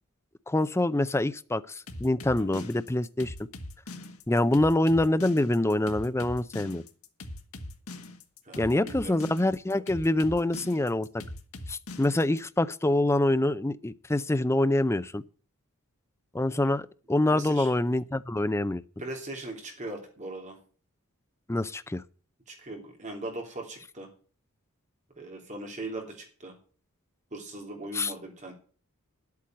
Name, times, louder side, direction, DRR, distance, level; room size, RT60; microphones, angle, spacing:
voice 1, 0.5-3.3 4.3-6.8 8.6-11.1 11.7-15.2 16.3-16.8 17.1-18.8 21.5-22.0 27.9-28.1, left 1 dB, 10° left, 0.5 m, -25 dB
sound 1, 1.9-12.4, left 2 dB, 75° left, 1.6 m, -41 dB
voice 2, 8.4-9.2 16.6-16.7 17.3-17.7 19.0-20.6 22.5-24.1 25.2-26.5 27.3-28.5, right 2 dB, 35° right, 3.0 m, -39 dB
11.0 x 8.5 x 7.7 m
head